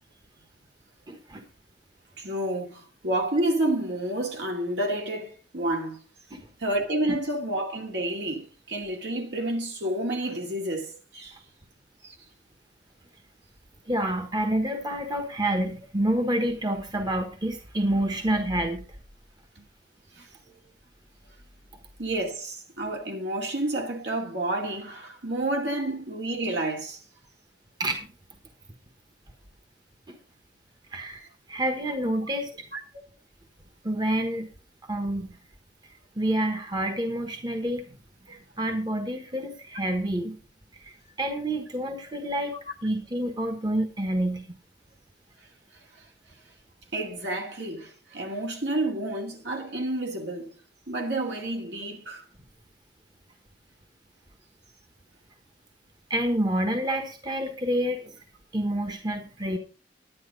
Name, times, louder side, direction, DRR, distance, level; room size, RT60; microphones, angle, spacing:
voice 1, 1.1-1.4 6.3-6.5 13.9-18.8 27.8-28.1 30.1-30.2 30.9-31.2 31.5-32.5 33.8-34.5 34.8-35.3 36.2-37.9 38.3-40.3 40.8-44.4 56.1-58.2 58.5-59.6, right 1 dB, 25° right, 1.3 m, -28 dB
voice 2, 2.2-6.0 6.6-11.3 12.0-12.2 19.6-19.7 20.2-20.6 22.0-27.0 32.7-32.8 46.9-50.5 50.9-52.2, right 1 dB, 70° right, 2.3 m, -30 dB
10.5 x 10.0 x 3.9 m
head